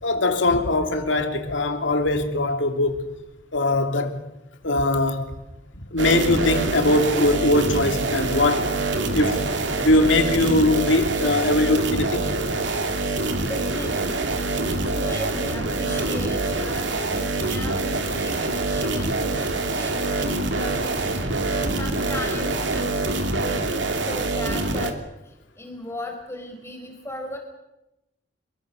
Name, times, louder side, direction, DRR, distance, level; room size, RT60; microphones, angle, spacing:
voice 1, 0.0-2.9 3.5-4.2 4.6-5.3 5.9-8.7 9.1-9.4 9.8-12.2, left 2 dB, 70° left, 3.2 m, -21 dB
sound 1, 6.0-24.9, right 2 dB, 65° right, 2.9 m, -25 dB
voice 2, 13.4-21.3 21.8-23.0 23.4-24.9 25.6-27.4, left 1 dB, 15° left, 4.6 m, -37 dB
28.0 x 22.5 x 6.7 m
head